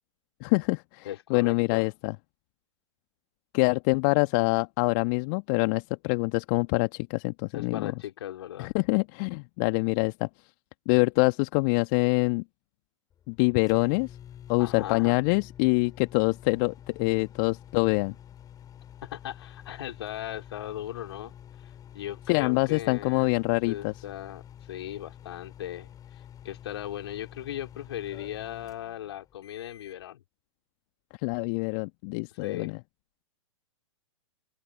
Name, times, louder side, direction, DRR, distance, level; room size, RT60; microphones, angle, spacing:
voice 1, 0.4-2.1 3.5-7.9 8.6-10.3 10.9-12.4 13.3-14.2 14.5-18.1 22.3-23.9 31.2-32.8, left 33 dB, 40° left, 1.7 m, -25 dB
voice 2, 1.0-1.9 7.5-8.7 14.6-15.2 19.1-21.3 21.6-23.3 23.7-25.9 26.4-30.2 32.3-32.7, left 12 dB, 55° left, 4.7 m, -38 dB
sound 1, 13.1-30.0, left 10 dB, 25° left, 7.2 m, -48 dB
open air
figure-of-eight pair, 105°, 16 cm